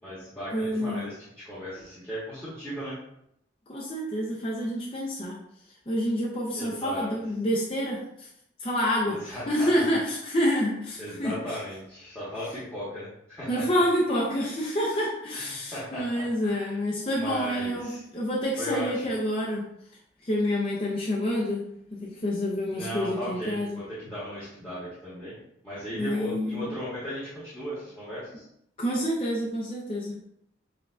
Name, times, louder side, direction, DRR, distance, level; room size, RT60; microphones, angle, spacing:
voice 1, 0.0-1.1 1.4-3.0 6.5-7.1 9.0-9.8 11.0-13.6 15.3-16.7 17.1-18.0 18.6-18.9 22.7-25.4 25.6-28.4, equal, 10° left, -11 dB, 1.1 m, -36 dB
voice 2, 0.5-1.0 3.7-5.4 5.9-8.3 8.6-11.6 13.5-19.6 20.2-21.6 21.9-23.8 25.9-26.7 28.8-30.1, equal, 30° left, -4 dB, 0.6 m, -28 dB
6.7 x 2.3 x 2.5 m, 0.76 s
head